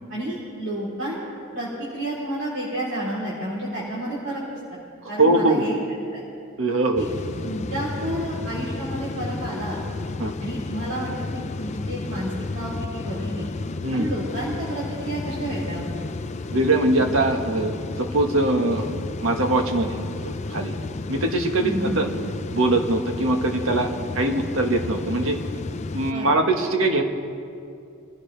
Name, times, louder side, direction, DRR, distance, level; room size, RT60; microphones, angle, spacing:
voice 1, 0.1-1.2 1.5-4.6 5.1-5.7 6.1-6.2 7.0-7.1 7.4-9.8 10.4-13.5 13.9-15.9 21.6-22.0 26.1-26.3, right 1 dB, 60° right, -9 dB, 3.4 m, -30 dB
voice 2, 5.2-5.6 6.6-7.1 10.2-10.4 13.8-14.1 16.5-18.9 19.2-20.7 21.1-22.1 22.5-25.4 25.9-27.0, right 2 dB, 75° right, 4 dB, 1.5 m, -22 dB
sound 1, 7.0-26.1, left 3 dB, 35° left, 0.4 m, -32 dB
26.5 x 16.5 x 3.4 m, 2.5 s
head